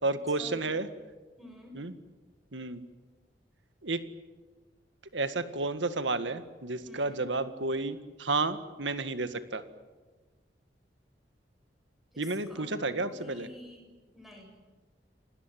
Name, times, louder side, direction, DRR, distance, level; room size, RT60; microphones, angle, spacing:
voice 1, 0.0-0.9 1.7-1.9 2.5-2.8 3.8-4.0 5.1-9.6 12.2-13.5, right 3 dB, 90° right, 10 dB, 1.8 m, -31 dB
voice 2, 1.4-1.8 6.9-7.3 12.1-12.7 13.0-13.9 14.1-14.5, left 1 dB, ahead, 0 dB, 7.9 m, -49 dB
29.0 x 19.0 x 9.3 m, 1.3 s
head